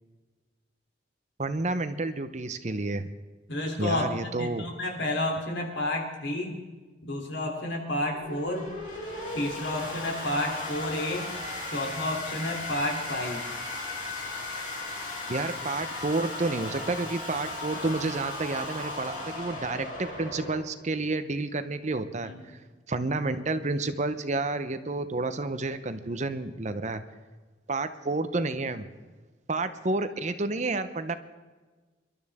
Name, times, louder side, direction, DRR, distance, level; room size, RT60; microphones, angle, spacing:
voice 1, 1.4-3.1 3.8-4.7 15.3-22.6 22.9-27.0 27.7-28.8 29.5-31.1, right 2 dB, 40° right, 10 dB, 0.8 m, -30 dB
voice 2, 3.5-6.6 7.0-8.7 9.3-11.3 11.7-13.4 22.2-22.4, left 1 dB, 80° left, 1 dB, 3.3 m, -31 dB
sound 1, 8.0-20.6, left 2 dB, 50° left, 5.2 m, -36 dB
26.5 x 12.5 x 3.6 m, 1.3 s
head